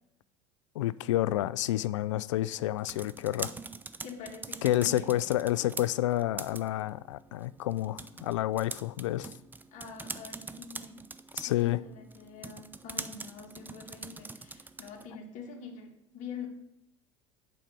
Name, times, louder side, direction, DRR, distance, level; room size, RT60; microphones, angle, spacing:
voice 1, 0.8-3.5 4.6-9.3 11.3-11.8, left 14 dB, 80° left, 19 dB, 0.4 m, -29 dB
sound 1, 2.6-15.1, right 3 dB, 10° right, 0.5 m, -44 dB
voice 2, 4.0-5.2 9.7-11.0 11.5-16.5, left 5 dB, 55° left, 1 dB, 1.7 m, -45 dB
7.5 x 5.3 x 6.8 m, 0.80 s
hypercardioid pair, 85°, 16 cm